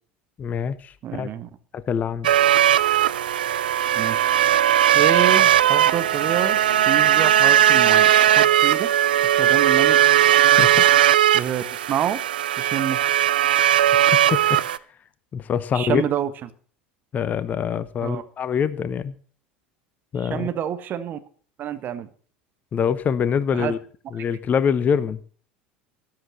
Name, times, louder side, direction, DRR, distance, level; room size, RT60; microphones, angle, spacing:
voice 1, 0.4-1.3 1.7-2.3 10.6-10.9 14.3-14.6 15.3-16.0 17.1-19.1 20.1-20.5 22.7-23.8 24.1-25.2, left 7 dB, 30° left, 16 dB, 1.0 m, -24 dB
voice 2, 1.0-1.5 3.9-4.5 4.9-6.6 6.9-8.9 9.4-10.0 11.3-12.2 12.6-13.0 15.7-16.3 18.0-18.2 20.2-21.2 21.6-22.1 23.5-23.7, right 10 dB, 35° right, 11 dB, 1.5 m, -27 dB
sound 1, 2.2-14.8, right 11 dB, 70° right, 0.5 m, -18 dB
14.0 x 12.5 x 4.2 m, 0.43 s
figure-of-eight pair, 75°, 5 cm